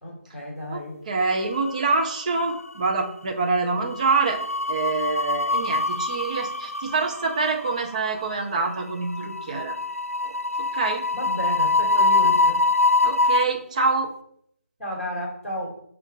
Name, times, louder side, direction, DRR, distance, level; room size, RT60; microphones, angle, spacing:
voice 1, 0.0-1.0 11.1-12.6 14.8-15.8, equal, 5° left, -10 dB, 2.4 m, -32 dB
voice 2, 0.7-4.4 4.7-9.8 10.2-11.0 13.0-14.1, right 4 dB, 30° right, 3 dB, 0.8 m, -26 dB
sound 1, 1.4-2.2 2.4-2.7 3.9-13.4, left 3 dB, 85° left, 0.5 m, -24 dB
7.9 x 2.6 x 5.7 m, 0.68 s
figure-of-eight pair, 155°, 7 cm